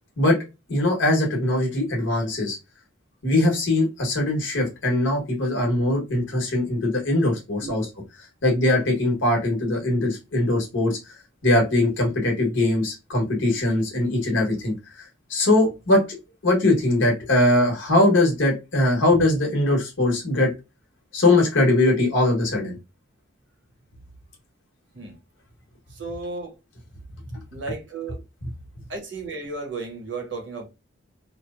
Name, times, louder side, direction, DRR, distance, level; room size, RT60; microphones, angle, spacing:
voice 1, 0.7-2.6 3.2-7.9 8.4-11.0 11.4-16.2 16.4-20.5 21.1-22.8 27.3-27.4, left 1 dB, 75° left, 1.1 m, -21 dB
voice 2, 25.9-26.5 27.5-28.2 28.9-30.7, right 3 dB, 70° right, 0.9 m, -34 dB
3.0 x 2.0 x 2.4 m
head